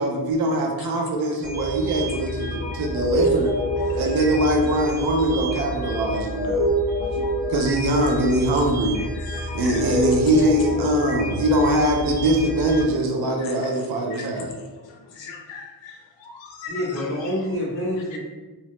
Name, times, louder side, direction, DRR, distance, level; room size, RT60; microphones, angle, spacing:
voice 1, 0.0-3.5 3.9-6.6 7.0-9.0 9.5-14.5, right 1 dB, 55° right, 1 dB, 0.5 m, -22 dB
sound 1, 1.4-12.8, equal, 20° right, 0.7 m, -27 dB
voice 2, 9.3-9.8 13.4-13.5 14.1-14.3 14.9-17.4 18.1-18.2, left 5 dB, 75° left, 1 dB, 0.6 m, -39 dB
voice 3, 16.7-18.2, left 1 dB, 30° left, -6 dB, 0.8 m, -27 dB
2.8 x 2.0 x 2.9 m, 1.2 s
wide cardioid pair, 170°, 45 cm